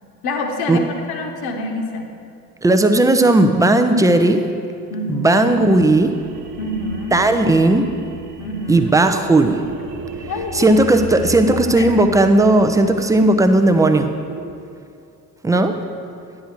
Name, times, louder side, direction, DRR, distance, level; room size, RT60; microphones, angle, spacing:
voice 1, 0.2-2.1 4.9-5.5 6.6-7.2 8.4-8.9 10.3-10.8 11.4-12.0, left 2 dB, 50° left, 4 dB, 1.1 m, -27 dB
voice 2, 2.6-4.5 5.1-6.1 7.1-7.8 8.7-9.6 10.5-14.1 15.4-15.8, right 2 dB, 10° right, 7 dB, 0.3 m, -15 dB
sound 1, 5.1-14.5, right 1 dB, 40° right, 1.0 m, -35 dB
10.0 x 4.9 x 6.4 m, 2.5 s
figure-of-eight pair, 50°, 48 cm